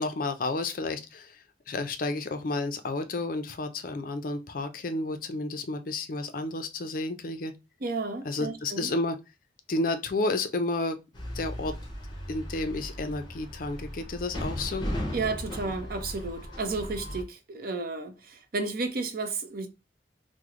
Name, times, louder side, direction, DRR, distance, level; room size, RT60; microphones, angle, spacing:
voice 1, 0.0-7.5 8.2-9.2 9.7-11.0 11.3-11.8 12.3-14.9, left 2 dB, 50° left, 0.4 m, -31 dB
voice 2, 7.8-8.9 15.1-19.7, right 3 dB, 55° right, 0.6 m, -32 dB
sound 1, 11.1-17.2, equal, 25° left, 0.9 m, -37 dB
3.1 x 2.0 x 3.5 m
head